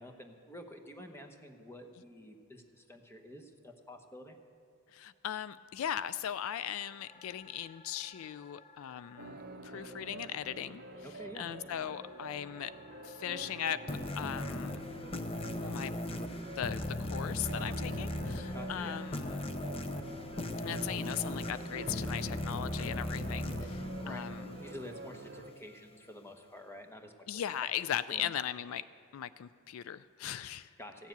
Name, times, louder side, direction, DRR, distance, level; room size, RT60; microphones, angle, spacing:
voice 1, 0.0-4.4 11.0-11.5 18.5-19.0 24.0-24.2 24.6-27.4 28.1-28.3 30.8-31.1, left 1 dB, 10° left, 4 dB, 1.0 m, -49 dB
voice 2, 4.9-10.8 11.3-12.7 13.0-13.8 14.2-14.8 15.6-15.9 16.6-19.5 20.6-24.6 27.3-28.8 29.1-30.7, left 10 dB, 70° left, 16 dB, 0.3 m, -38 dB
sound 1, 6.8-9.3 11.8-14.3 16.8-19.3, left 3 dB, 55° left, 1.9 m, -58 dB
sound 2, 9.2-25.5, right 2 dB, 50° right, 0.7 m, -48 dB
sound 3, 13.9-25.0, left 1 dB, 25° left, 0.7 m, -38 dB
15.0 x 7.3 x 9.3 m, 2.4 s
head